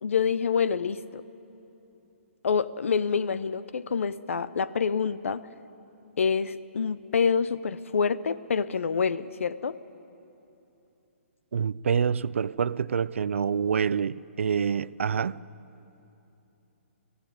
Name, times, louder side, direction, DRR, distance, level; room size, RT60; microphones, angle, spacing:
voice 1, 0.0-1.2 2.4-5.5 6.2-9.8, left 6 dB, 75° left, 0.7 m, -27 dB
voice 2, 11.5-15.4, right 7 dB, 70° right, 0.4 m, -27 dB
18.0 x 15.5 x 9.4 m
hypercardioid pair, 180°, 7 cm